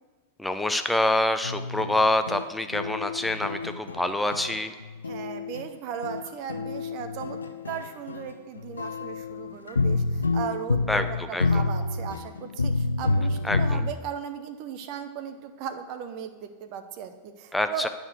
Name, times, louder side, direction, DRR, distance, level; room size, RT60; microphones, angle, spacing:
voice 1, 0.4-4.7 10.9-11.6 13.4-13.8 17.5-17.9, left 1 dB, 5° left, 8 dB, 0.6 m, -26 dB
sound 1, 1.4-5.6 6.0-13.9, left 3 dB, 75° left, 0.5 m, -29 dB
voice 2, 5.1-7.4 7.6-17.9, right 8 dB, 45° right, 8 dB, 0.7 m, -37 dB
9.5 x 5.2 x 6.2 m, 1.3 s
figure-of-eight pair, 90°, 0 cm